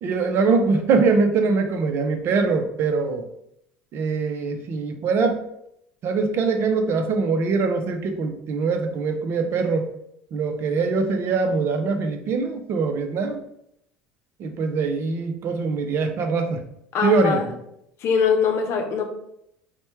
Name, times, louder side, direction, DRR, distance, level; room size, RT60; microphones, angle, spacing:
voice 1, 0.0-3.2 3.9-5.4 6.0-9.9 10.3-13.4 14.4-16.6 17.0-17.5, right 4 dB, 45° right, 6 dB, 0.6 m, -23 dB
voice 2, 16.9-17.5 18.0-19.0, left 6 dB, 50° left, 4 dB, 0.8 m, -22 dB
4.2 x 2.2 x 4.3 m, 0.76 s
figure-of-eight pair, 70°, 6 cm